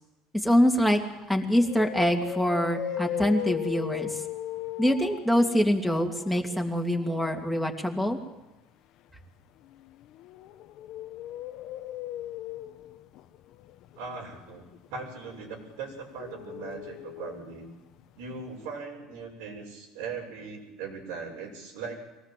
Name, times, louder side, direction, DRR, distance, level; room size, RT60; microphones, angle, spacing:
voice 1, 0.4-1.0 1.3-4.1 4.8-8.2, equal, 5° right, 3 dB, 2.7 m, -24 dB
sound 1, 1.1-1.2 1.6-7.5 9.6-17.7 17.9-18.0 18.4-18.5, left 12 dB, 60° left, 1.0 m, -38 dB
voice 2, 14.0-17.6 18.2-22.0, right 5 dB, 85° right, -1 dB, 6.8 m, -39 dB
23.5 x 18.5 x 7.8 m, 1.1 s
cardioid pair, 135°, 0 cm